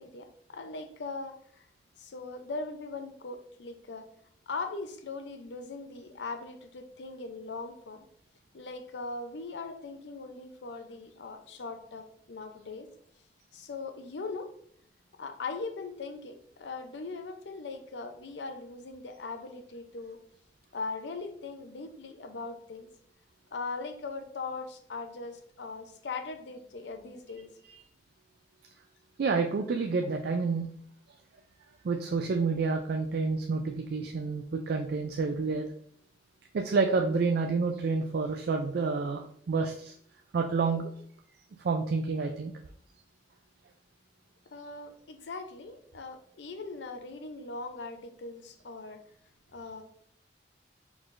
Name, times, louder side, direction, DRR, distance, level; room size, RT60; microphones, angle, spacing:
voice 1, 0.0-1.6 2.0-4.0 4.5-8.0 8.5-12.9 13.5-14.5 15.2-20.2 20.7-22.9 23.5-27.5 44.5-49.0 49.5-49.8, left 3 dB, 80° left, 7 dB, 0.6 m, -40 dB
voice 2, 29.2-30.7 31.8-35.7 36.5-39.9 40.3-40.9 41.6-42.5, right 4 dB, 60° right, 4 dB, 0.4 m, -29 dB
4.6 x 3.9 x 2.5 m, 0.63 s
head